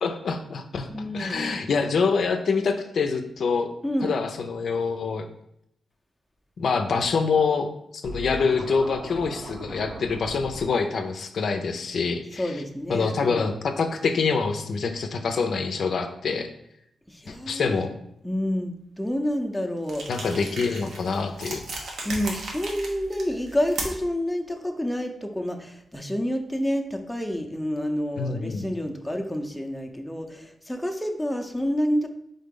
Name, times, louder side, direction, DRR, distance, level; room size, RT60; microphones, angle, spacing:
voice 1, 0.0-0.9 1.1-3.7 4.0-5.3 6.6-7.7 8.0-12.5 12.9-16.5 17.3-17.9 20.1-21.6 28.2-28.6, left 5 dB, 70° left, 6 dB, 0.5 m, -25 dB
voice 2, 0.9-1.5 3.8-4.1 12.3-13.5 17.1-17.9 18.2-20.0 22.0-32.1, equal, 5° left, 2 dB, 0.6 m, -28 dB
Scratching (performance technique), 8.0-10.6, right 1 dB, 50° right, 0.8 m, -38 dB
sound 1, 19.8-24.2, right 2 dB, 80° right, 1.0 m, -36 dB
3.8 x 3.7 x 3.7 m, 0.76 s
cardioid pair, 75°, 0 cm